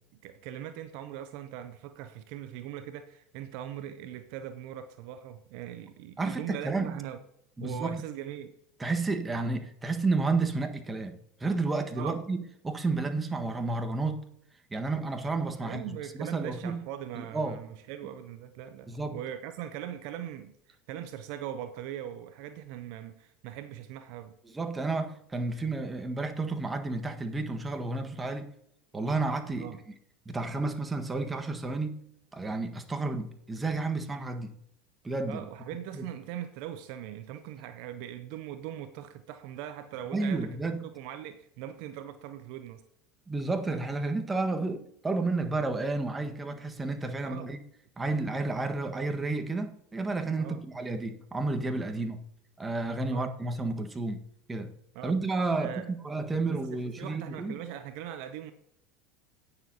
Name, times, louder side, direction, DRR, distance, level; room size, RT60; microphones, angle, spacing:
voice 1, 0.2-7.2 7.6-8.5 12.0-12.2 15.6-24.3 29.6-29.8 35.3-42.8 47.2-47.5 50.4-50.6 51.9-52.1 53.1-53.3 54.9-55.2 55.6-55.9 56.5-58.5, right 11 dB, 60° right, 0.7 m, -41 dB
voice 2, 6.2-7.0 7.6-8.0 8.8-14.2 14.7-16.8 17.2-17.6 18.9-19.2 24.5-28.5 28.9-29.7 30.2-32.0 32.3-34.5 35.0-35.4 35.9-36.0 40.1-40.8 43.3-47.6 48.0-52.2 52.6-54.2 54.5-54.7 55.0-57.6, right 3 dB, 15° right, 1.5 m, -31 dB
17.5 x 6.9 x 2.9 m
hypercardioid pair, 80°, 0 cm